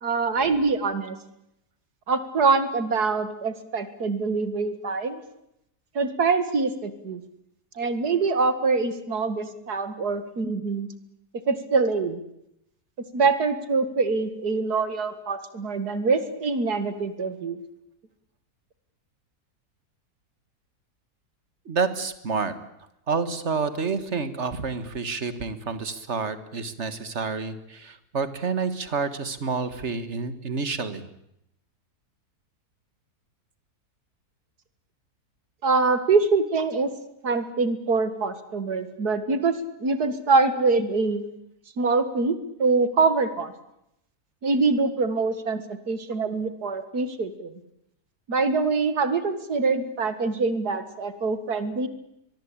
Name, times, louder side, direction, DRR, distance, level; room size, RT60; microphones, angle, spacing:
voice 1, 0.0-1.2 2.1-5.2 6.0-7.2 7.8-10.9 11.5-12.2 13.1-17.6 35.6-36.9 37.2-41.2 41.8-43.5 44.4-47.5 48.3-51.9, right 4 dB, 75° right, 12 dB, 2.5 m, -24 dB
voice 2, 21.7-22.6 23.1-31.1, right 4 dB, 45° right, 12 dB, 2.0 m, -29 dB
23.5 x 22.0 x 8.7 m, 0.81 s
omnidirectional pair, 1.7 m